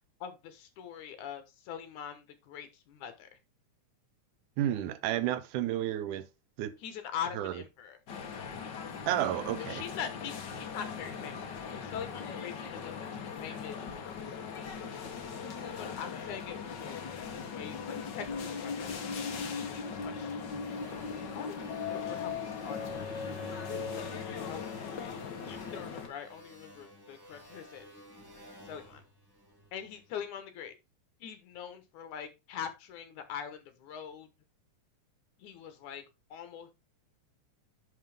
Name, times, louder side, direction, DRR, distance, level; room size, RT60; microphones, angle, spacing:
voice 1, 0.2-3.3 6.8-8.0 9.6-11.4 11.7-14.3 15.6-17.0 17.3-19.0 19.5-20.4 21.3-23.3 24.5-24.7 25.2-27.9 28.6-29.0 29.7-30.7 31.2-34.3 35.4-36.0 36.3-36.7, left 8 dB, 75° left, 2.6 m, -43 dB
voice 2, 4.6-6.3 6.6-6.7 7.4-7.5 9.1-9.8, right 12 dB, 80° right, 2.2 m, -31 dB
sound 1, 8.1-26.1, left 6 dB, 60° left, 1.2 m, -39 dB
sound 2, 20.6-30.0, equal, 10° right, 1.7 m, -51 dB
10.5 x 4.1 x 3.5 m
omnidirectional pair, 3.6 m